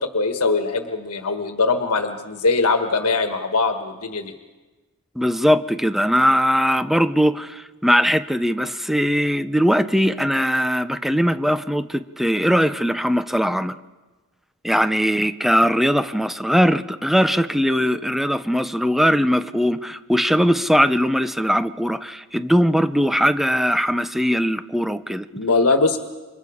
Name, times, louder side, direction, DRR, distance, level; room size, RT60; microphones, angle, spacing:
voice 1, 0.1-4.3 25.3-26.0, left 3 dB, 85° left, 1.5 m, -21 dB
voice 2, 5.2-13.7 14.6-25.3, equal, ahead, 0.7 m, -20 dB
28.5 x 26.0 x 5.0 m
head